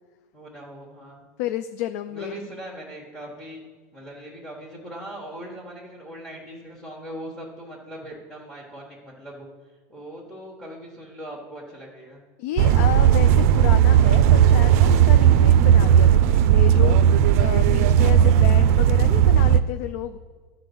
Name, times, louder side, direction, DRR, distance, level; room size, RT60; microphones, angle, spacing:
voice 1, 0.3-1.3 2.1-3.6 3.9-9.5 9.9-12.2, right 1 dB, 5° left, -3 dB, 1.1 m, -40 dB
voice 2, 1.4-2.4 12.4-17.0 17.4-20.2, left 12 dB, 70° left, 10 dB, 0.4 m, -31 dB
sound 1, 12.6-19.6, right 10 dB, 60° right, 0.4 m, -16 dB
11.0 x 4.0 x 6.9 m, 1.5 s
supercardioid pair, 160°, 9 cm